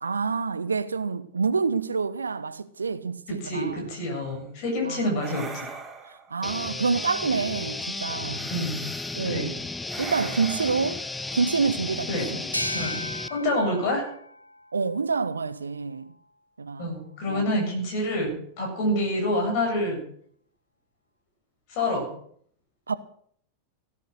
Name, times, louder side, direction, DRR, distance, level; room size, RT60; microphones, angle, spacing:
voice 1, 0.0-3.8 4.8-5.1 6.0-8.5 9.1-9.5 10.0-11.0 11.3-12.2 14.7-16.1 16.6-16.9 17.3-17.5 22.9-23.0, right 4 dB, 75° right, 0.8 m, -27 dB
voice 2, 3.3-5.6 8.5-8.8 9.2-9.6 12.1-13.0 13.3-14.1 16.8-20.0 21.7-22.1, left 1 dB, 45° left, 7.6 m, -27 dB
sound 1, 4.0-4.3 5.2-6.4 8.3-9.2 9.9-12.1, right 4 dB, 15° right, 2.2 m, -41 dB
sound 2, 6.4-13.3, left 2 dB, 10° left, 0.7 m, -34 dB
sound 3, 12.5-15.9, left 1 dB, 90° left, 1.0 m, -36 dB
17.0 x 11.0 x 6.4 m
figure-of-eight pair, 90°, 0 cm